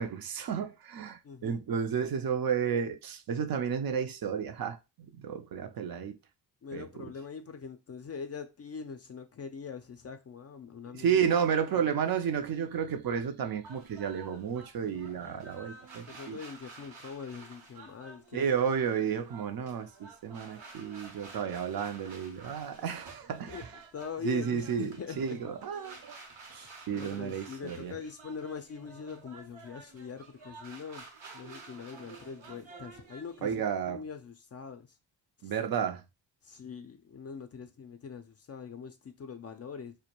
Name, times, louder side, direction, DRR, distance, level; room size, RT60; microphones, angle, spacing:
voice 1, 0.0-6.2 6.7-6.9 10.9-16.4 18.3-23.5 24.2-24.9 25.2-26.2 26.5-27.9 33.4-34.0 35.4-36.0, right 7 dB, 50° right, 0.5 m, -32 dB
voice 2, 1.2-1.6 6.6-11.2 11.7-11.9 16.1-18.5 23.5-25.4 25.7-25.8 26.5-31.1 31.3-35.0 35.4-35.5 36.4-40.0, left 6 dB, 35° left, 0.4 m, -43 dB
sound 1, 13.6-33.4, right 4 dB, 75° right, 0.9 m, -51 dB
2.2 x 2.1 x 2.9 m
supercardioid pair, 45°, 46 cm